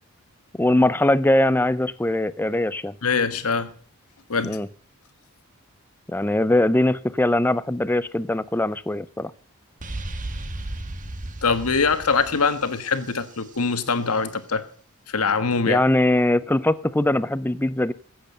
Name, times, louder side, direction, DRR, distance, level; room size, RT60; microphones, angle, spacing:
voice 1, 0.6-2.9 4.4-4.7 6.1-9.3 15.7-17.9, left 1 dB, 10° left, 0.5 m, -21 dB
voice 2, 3.0-3.7 4.3-4.6 11.4-14.7 15.1-15.8, left 5 dB, 80° left, 1.4 m, -23 dB
sound 1, 9.8-13.6, right 1 dB, 35° right, 1.3 m, -35 dB
15.5 x 7.9 x 6.5 m
head